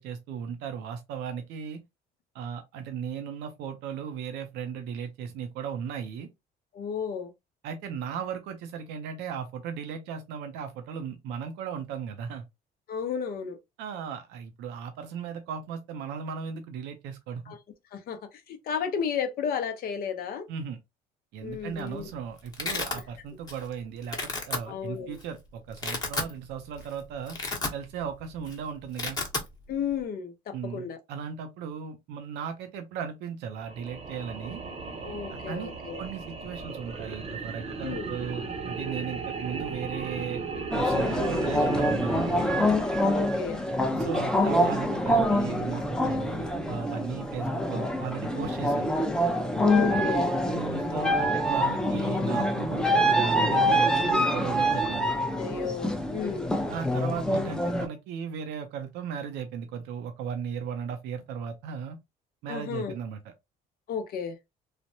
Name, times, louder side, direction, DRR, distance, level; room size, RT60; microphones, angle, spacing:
voice 1, 0.0-1.8 2.3-6.3 7.6-12.5 13.8-17.6 20.5-20.8 21.3-27.4 27.7-29.2 30.5-34.6 35.5-40.4 40.7-42.7 43.9-48.9 50.5-55.1 56.7-62.0 62.4-63.3, right 7 dB, 90° right, 0.6 m, -36 dB
voice 2, 6.7-7.3 12.9-13.6 17.5-17.6 17.9-18.2 18.5-20.4 21.4-22.1 24.7-25.2 29.7-31.0 35.0-36.0 37.8-38.1 43.1-43.6 49.5-50.3 55.3-56.5 62.5-62.9 63.9-64.3, left 7 dB, 60° left, 0.6 m, -33 dB
Domestic sounds home sounds, 21.5-21.9 22.1-23.0 23.5-23.7 24.0-24.6 25.2-25.3 25.7-26.3 26.7-26.9 27.2-28.1 28.4-28.5 28.8-29.5, left 3 dB, 25° left, 0.9 m, -32 dB
sound 1, 33.5-43.9, right 4 dB, 35° right, 0.7 m, -36 dB
sound 2, 40.7-57.9, equal, 5° left, 0.5 m, -26 dB
3.1 x 2.1 x 2.6 m
cardioid pair, 110°, 17 cm